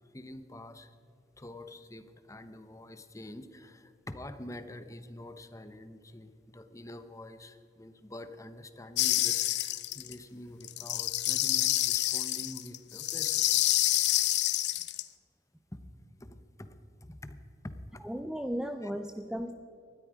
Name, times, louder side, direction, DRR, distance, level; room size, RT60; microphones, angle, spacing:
voice 1, 0.1-0.9 1.4-13.6 14.2-14.4 15.7-15.8 16.2-17.4 17.6-18.0 18.8-18.9, left 1 dB, 20° left, 10 dB, 0.9 m, -46 dB
sound 1, 9.0-10.1 10.6-15.0, left 15 dB, 70° left, 0.7 m, -28 dB
voice 2, 18.0-19.5, equal, 5° right, 7 dB, 0.5 m, -35 dB
19.5 x 13.0 x 5.0 m, 2.4 s
head